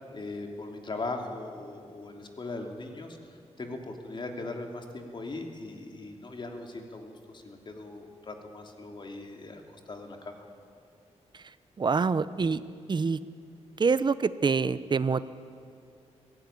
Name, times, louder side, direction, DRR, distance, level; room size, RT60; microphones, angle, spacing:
voice 1, 0.0-3.2 3.6-10.5, left 2 dB, 40° left, 3 dB, 3.0 m, -39 dB
voice 2, 11.8-12.6 12.9-13.2 13.8-15.3, right 5 dB, 40° right, 15 dB, 0.8 m, -26 dB
23.0 x 16.0 x 9.9 m, 2.3 s
cardioid pair, 100°, 12 cm